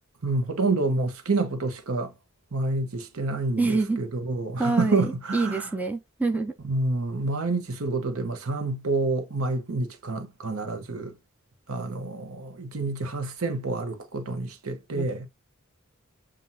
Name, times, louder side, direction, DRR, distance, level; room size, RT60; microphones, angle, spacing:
voice 1, 0.2-2.1 2.5-5.7 6.6-11.1 11.7-15.3, right 3 dB, 80° right, 0.9 m, -28 dB
voice 2, 3.6-4.0 4.6-6.5 14.9-15.1, right 3 dB, 5° right, 0.6 m, -26 dB
7.3 x 2.6 x 2.7 m
head